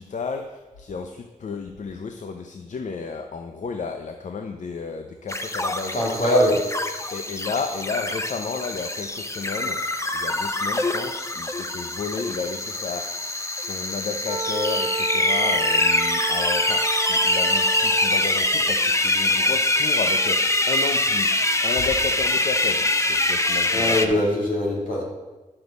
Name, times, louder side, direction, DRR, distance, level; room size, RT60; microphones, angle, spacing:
voice 1, 0.0-6.0 7.1-9.9 10.1-24.3, left 5 dB, 65° left, 6 dB, 0.6 m, -32 dB
sound 1, 5.3-24.1, left 2 dB, 20° left, 0.7 m, -24 dB
voice 2, 5.9-6.6 23.7-25.0, left 1 dB, 80° left, -3 dB, 2.4 m, -21 dB
Wind instrument woodwind instrument, 14.2-18.4, right 5 dB, 30° right, 0.4 m, -31 dB
9.8 x 6.4 x 4.1 m, 1.1 s
cardioid pair, 50°, 14 cm